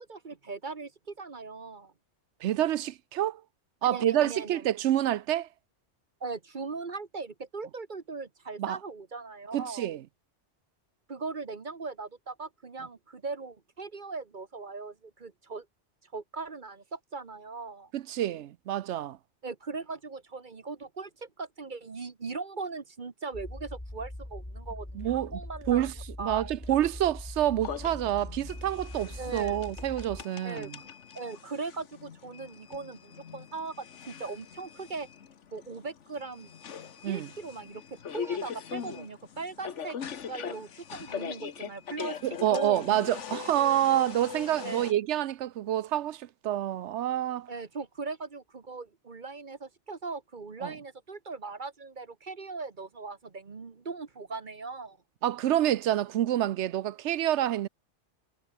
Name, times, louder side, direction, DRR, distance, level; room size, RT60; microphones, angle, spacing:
voice 1, 0.0-1.9 3.8-4.7 6.2-9.9 11.1-15.7 16.1-17.9 19.4-25.9 26.2-26.5 29.2-29.6 30.4-30.9 31.1-35.1 35.5-36.5 37.0-40.0 40.3-42.2 42.5-42.9 44.6-44.9 47.5-55.0, right 4 dB, 45° right, 1.3 m, -39 dB
voice 2, 2.4-3.4 3.8-5.5 8.6-8.8 9.5-10.0 17.9-19.2 24.9-25.4 25.7-25.9 26.2-30.8 37.0-37.3 42.2-47.5 50.6-50.7 55.2-57.7, right 12 dB, 75° right, 0.9 m, -28 dB
sound 1, 23.3-30.2, left 1 dB, 10° left, 2.3 m, -42 dB
sound 2, 27.6-44.9, left 7 dB, 90° left, 1.5 m, -41 dB
omnidirectional pair, 1.2 m